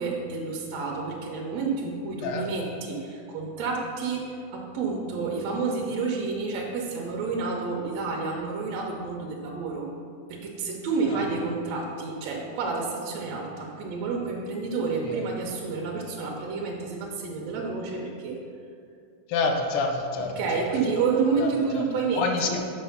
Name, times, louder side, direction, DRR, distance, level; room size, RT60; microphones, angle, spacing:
voice 1, 0.0-9.9 10.3-18.4 20.4-22.6, right 4 dB, 70° right, -1 dB, 1.9 m, -29 dB
voice 2, 2.2-2.7 15.1-15.2 19.3-20.3 21.4-21.5 21.7-21.8 22.2-22.6, left 4 dB, 80° left, 3 dB, 1.2 m, -27 dB
5.8 x 5.3 x 5.6 m, 2.3 s
omnidirectional pair, 3.4 m